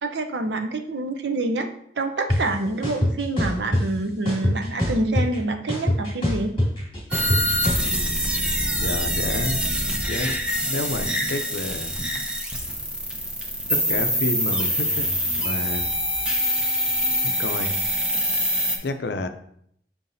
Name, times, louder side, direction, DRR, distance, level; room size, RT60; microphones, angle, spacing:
voice 1, 0.0-1.7 2.0-6.5, right 2 dB, 80° right, 6 dB, 0.7 m, -26 dB
sound 1, 2.3-2.4 2.8-3.8 4.3-5.4 5.7-7.9, left 1 dB, 30° left, 2.5 m, -22 dB
sound 2, 7.1-18.8, equal, 5° right, 0.7 m, -25 dB
voice 2, 7.8-8.3 8.8-9.6 10.1-11.9 13.7-15.9 17.4-17.8 18.2-18.3 18.8-19.3, left 2 dB, 70° left, 9 dB, 0.5 m, -30 dB
6.1 x 5.7 x 2.7 m, 0.69 s
head